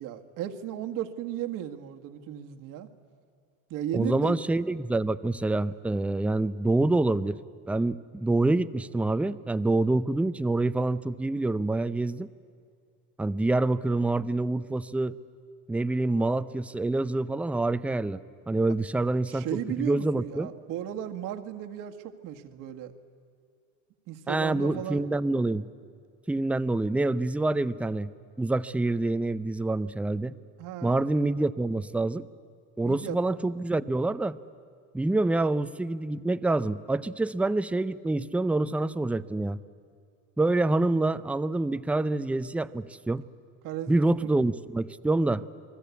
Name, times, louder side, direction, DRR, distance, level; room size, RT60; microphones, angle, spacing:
voice 1, 0.0-2.9 3.7-4.4 19.3-22.9 24.1-25.0 30.6-31.0 32.8-33.2 43.6-44.4, right 11 dB, 60° right, 6 dB, 1.8 m, -35 dB
voice 2, 3.9-7.4 7.7-12.3 13.2-15.1 15.7-18.2 18.5-20.5 24.3-25.7 26.3-28.1 28.4-30.3 30.8-32.3 32.8-34.4 34.9-39.6 40.4-43.2 43.9-45.4, right 2 dB, 5° right, 14 dB, 0.5 m, -26 dB
28.0 x 20.0 x 8.4 m, 2.3 s
supercardioid pair, 105°, 35 cm